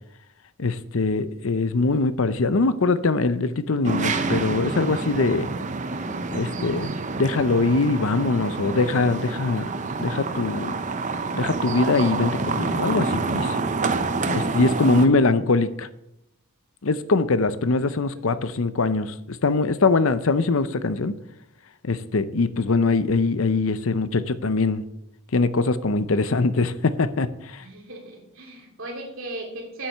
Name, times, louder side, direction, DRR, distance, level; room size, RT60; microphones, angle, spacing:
voice 1, 0.6-5.5 6.3-6.9 7.2-9.7 10.0-10.8 11.3-13.6 14.3-15.9 16.8-21.2 21.8-24.8 25.3-27.6, left 3 dB, 65° left, 13 dB, 0.7 m, -22 dB
sound 1, 3.8-15.1, right 3 dB, 35° right, 0.7 m, -27 dB
voice 2, 27.6-29.9, right 2 dB, 65° right, 0 dB, 3.0 m, -37 dB
9.3 x 7.4 x 6.7 m, 0.85 s
head